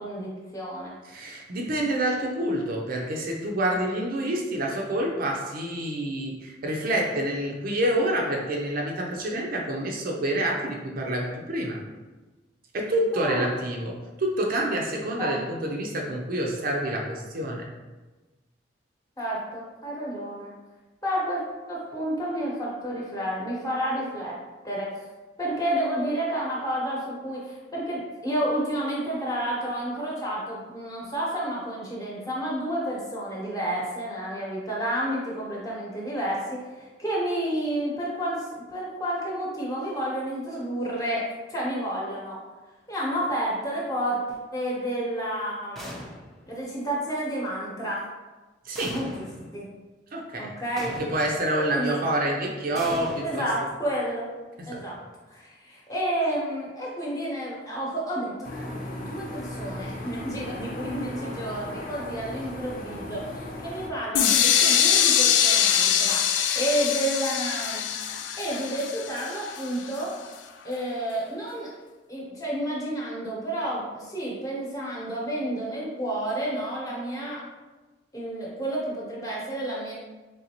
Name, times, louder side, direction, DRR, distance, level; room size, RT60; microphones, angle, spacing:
voice 1, 0.0-0.9 13.1-13.5 15.2-15.4 19.2-20.5 21.0-21.4 21.7-24.3 24.6-25.1 25.4-42.4 42.9-44.2 44.5-46.0 46.5-48.0 48.9-49.3 49.5-49.7 50.4-50.9 51.5-52.0 53.2-54.3 54.7-55.0 55.3-67.8 68.4-70.1 70.6-71.7 72.1-77.4 78.1-79.9, right 1 dB, 20° left, -5 dB, 1.0 m, -30 dB
voice 2, 1.0-11.8 12.7-17.7 48.6-49.0 50.1-50.5 51.0-53.5 54.6-54.8, right 1 dB, 50° right, 0 dB, 0.5 m, -27 dB
sound 1, 45.8-46.5 48.8-49.5 50.8-51.5 52.8-54.0, equal, ahead, 0.6 m, -39 dB
sound 2, 58.4-63.9, left 1 dB, 50° left, 0.7 m, -37 dB
sound 3, 64.1-70.0, left 9 dB, 80° left, 0.3 m, -23 dB
4.0 x 3.3 x 2.9 m, 1.2 s
head